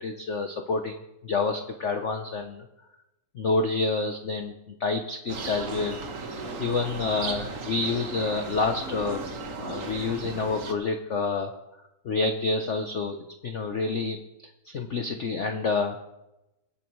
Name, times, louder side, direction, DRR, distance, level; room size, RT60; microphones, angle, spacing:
voice 1, 0.0-2.6 3.3-4.5 4.8-9.2 9.6-11.5 12.0-13.2 13.4-14.2 14.6-16.0, left 3 dB, 60° left, 5 dB, 0.7 m, -28 dB
sound 1, 5.3-10.7, right 3 dB, 45° right, 1.3 m, -36 dB
25.0 x 8.6 x 3.1 m, 0.95 s
omnidirectional pair, 2.2 m